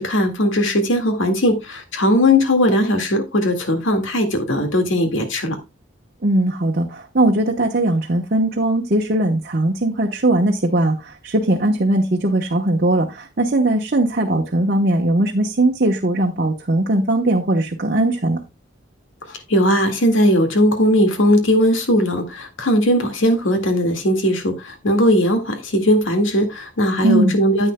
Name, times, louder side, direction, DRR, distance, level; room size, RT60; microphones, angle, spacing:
voice 1, 0.0-5.6 19.3-27.7, equal, 80° left, 1.9 m, -18 dB
voice 2, 6.2-18.4 27.0-27.3, right 1 dB, 50° right, 1.0 m, -19 dB
10.0 x 9.0 x 2.2 m
head